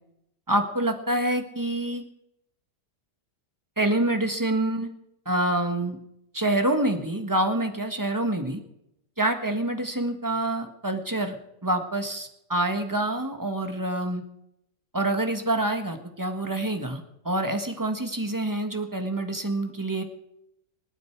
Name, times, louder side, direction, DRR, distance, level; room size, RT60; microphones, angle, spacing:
voice 1, 0.5-2.0 3.8-4.9 5.2-6.0 6.3-8.6 9.2-11.3 11.6-14.2 14.9-20.0, right 1 dB, 10° right, 6 dB, 1.5 m, -26 dB
27.0 x 9.3 x 4.7 m, 0.80 s
omnidirectional pair, 1.9 m